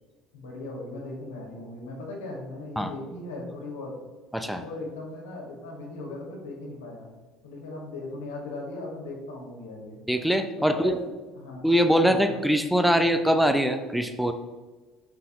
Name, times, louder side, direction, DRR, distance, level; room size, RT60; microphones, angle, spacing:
voice 1, 0.3-3.9 4.6-7.1 7.4-10.0 10.7-11.0 11.4-11.6 12.0-12.4, left 2 dB, 80° left, -2 dB, 1.9 m, -38 dB
voice 2, 10.1-11.0 11.6-14.3, equal, ahead, 8 dB, 0.6 m, -22 dB
6.0 x 5.6 x 3.7 m, 1.3 s
hypercardioid pair, 60°, 0 cm